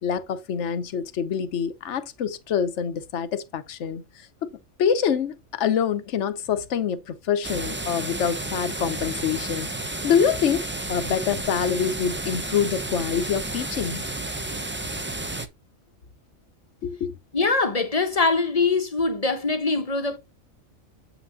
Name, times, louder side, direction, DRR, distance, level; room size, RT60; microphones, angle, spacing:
voice 1, 0.0-4.5 4.8-9.7 10.0-14.0 16.8-17.1, left 7 dB, 65° left, 1.1 m, -26 dB
sound 1, 7.4-15.5, right 2 dB, 15° right, 0.4 m, -32 dB
voice 2, 17.3-20.2, left 3 dB, 30° left, 0.9 m, -23 dB
8.3 x 6.0 x 2.6 m
omnidirectional pair, 1.4 m